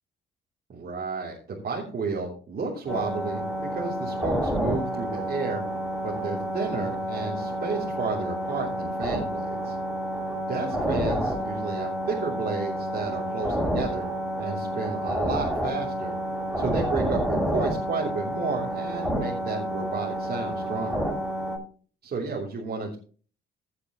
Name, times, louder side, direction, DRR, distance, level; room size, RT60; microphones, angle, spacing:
voice 1, 0.7-3.4 3.7-5.6 6.0-9.7 10.5-14.0 14.4-16.2 16.6-21.1 22.0-23.0, right 4 dB, 55° right, -4 dB, 3.4 m, -32 dB
sound 1, 2.9-21.6, equal, ahead, 5.9 m, -29 dB
16.5 x 8.3 x 3.1 m, 0.40 s
cardioid pair, 90°, 20 cm